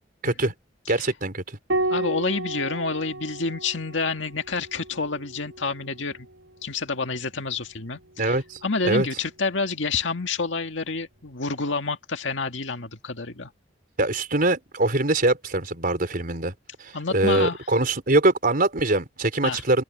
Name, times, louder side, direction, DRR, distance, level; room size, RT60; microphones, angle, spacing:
voice 1, 0.9-1.6 8.2-8.6 8.8-9.1 14.0-16.5 16.8-19.8, right 2 dB, 50° right, 4.3 m, -23 dB
Piano, 1.7-6.5 8.2-9.0, right 2 dB, 90° right, 6.7 m, -33 dB
voice 2, 1.9-6.3 6.6-13.5 16.9-17.6 19.4-19.6, left 4 dB, 90° left, 1.9 m, -28 dB
open air
head